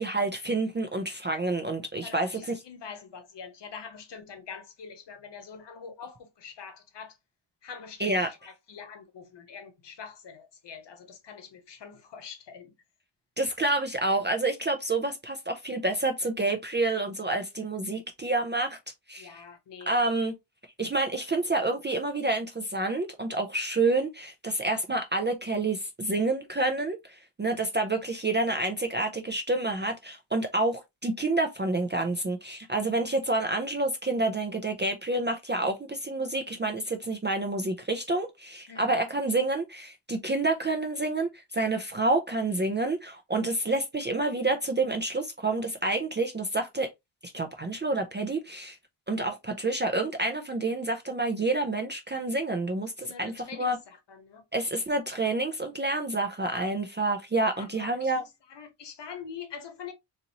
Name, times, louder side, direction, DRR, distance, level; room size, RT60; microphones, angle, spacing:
voice 1, 0.0-2.6 8.0-8.3 13.4-18.8 19.1-19.3 19.9-20.3 20.8-46.9 47.2-48.8 49.1-53.8 54.5-58.2, right 2 dB, 25° right, 0.4 m, -28 dB
voice 2, 2.0-7.2 7.6-12.7 19.2-20.0 38.7-39.0 53.1-54.4 55.8-56.0 57.5-59.9, left 6 dB, 55° left, 1.0 m, -44 dB
4.0 x 2.7 x 2.8 m
wide cardioid pair, 175°, 49 cm